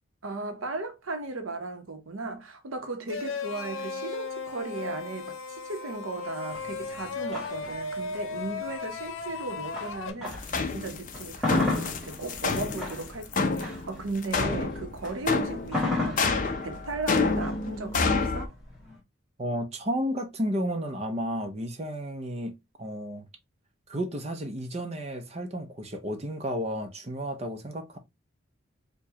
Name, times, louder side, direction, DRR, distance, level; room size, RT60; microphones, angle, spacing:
voice 1, 0.2-18.5, right 3 dB, 85° right, 0.9 m, -36 dB
sound 1, 3.1-10.1, left 4 dB, 80° left, 0.7 m, -36 dB
sound 2, 6.5-10.6 11.0-19.0, left 2 dB, ahead, 1.2 m, -34 dB
sound 3, 10.3-18.5, left 4 dB, 40° left, 0.5 m, -28 dB
voice 2, 19.4-23.3 23.9-28.0, equal, 30° right, 0.6 m, -32 dB
4.6 x 2.3 x 2.9 m
head